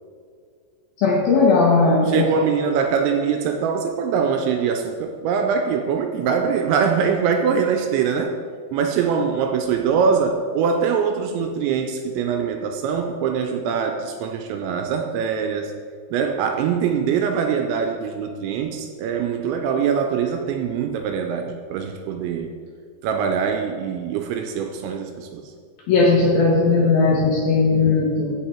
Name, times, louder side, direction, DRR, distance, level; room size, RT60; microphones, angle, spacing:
voice 1, 1.0-2.4 25.9-28.3, left 3 dB, 70° left, -4 dB, 2.3 m, -17 dB
voice 2, 2.1-8.3 8.7-15.7 16.1-22.5 23.0-25.5, right 6 dB, 80° right, 5 dB, 2.7 m, -23 dB
15.0 x 5.0 x 4.4 m, 2.1 s
omnidirectional pair, 5.6 m